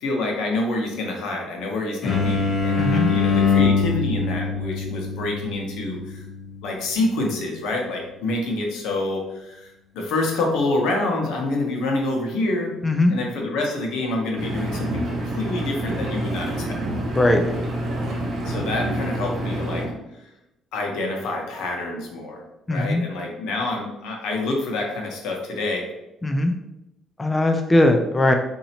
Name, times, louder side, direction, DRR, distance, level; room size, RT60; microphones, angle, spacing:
voice 1, 0.0-6.2 6.6-12.7 13.1-16.5 18.4-19.8 20.7-22.4 22.7-25.8, left 2 dB, 90° left, 0 dB, 0.9 m, -27 dB
sound 1, 2.0-7.5, left 5 dB, 40° left, 1.0 m, -24 dB
voice 2, 2.8-3.1 12.8-13.1 17.2-17.4 22.7-23.0 26.2-26.5 27.2-28.3, left 1 dB, 15° left, 5 dB, 0.3 m, -19 dB
Engine, 14.4-19.9, right 1 dB, 60° right, 1.0 m, -27 dB
4.1 x 2.7 x 2.8 m, 0.92 s
cardioid pair, 115°, 0 cm